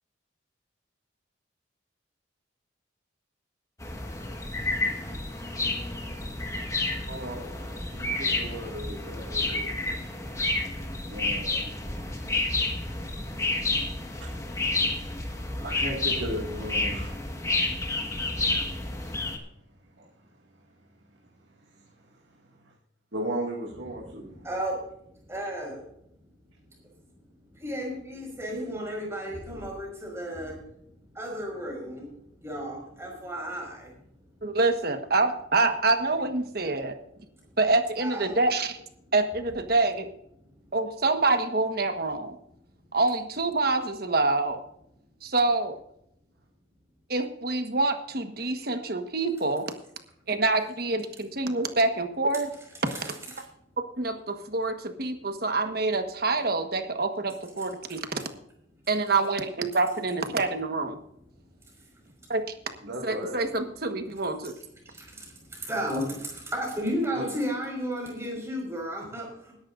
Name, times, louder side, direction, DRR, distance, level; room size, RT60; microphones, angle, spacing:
sound 1, 3.8-19.4, left 2 dB, 15° left, 1.5 m, -30 dB
voice 1, 7.1-9.7 11.1-11.8 14.2-14.3 15.6-17.1 18.0-18.2 20.0-20.1 23.1-24.3 62.8-63.3 67.1-67.5, right 1 dB, 70° right, -2 dB, 2.1 m, -36 dB
voice 2, 23.9-24.8 25.2-25.8 27.5-30.6 31.1-32.1 32.4-33.9 38.0-38.3 52.9-53.1 61.7-61.9 62.2-62.3 64.8-69.5, equal, 15° right, -1 dB, 5.2 m, -33 dB
voice 3, 34.4-37.0 37.6-38.8 39.1-40.1 40.7-42.4 42.9-44.6 45.2-45.8 47.1-49.6 50.3-52.5 54.0-58.0 58.9-61.0 62.3-62.4 63.0-64.6, right 3 dB, 50° right, 7 dB, 1.3 m, -26 dB
20.5 x 11.0 x 2.6 m, 0.74 s
head